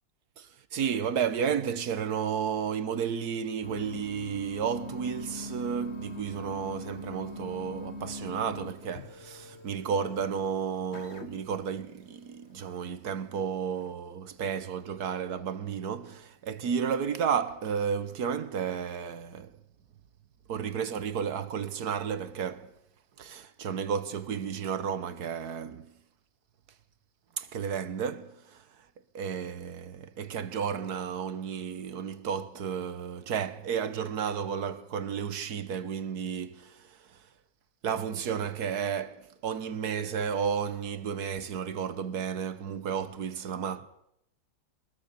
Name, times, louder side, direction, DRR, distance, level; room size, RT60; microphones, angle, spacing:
voice 1, 0.4-19.6 20.5-22.7 23.2-25.9 27.4-28.6 29.1-37.2 37.8-43.9, right 7 dB, 90° right, 1.8 m, -32 dB
sound 1, 3.6-12.8, left 1 dB, 45° left, 1.8 m, -42 dB
22.5 x 21.5 x 7.0 m
omnidirectional pair, 1.6 m